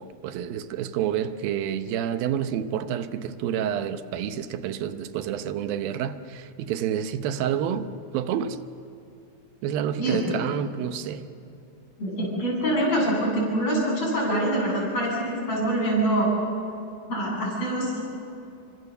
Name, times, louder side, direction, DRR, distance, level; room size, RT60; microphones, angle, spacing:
voice 1, 0.0-8.6 9.6-11.3, right 9 dB, 85° right, 2.8 m, -29 dB
voice 2, 10.0-10.4 12.0-16.3 17.1-18.0, right 1 dB, 45° left, 9.3 m, -25 dB
29.0 x 25.5 x 6.8 m
omnidirectional pair, 4.1 m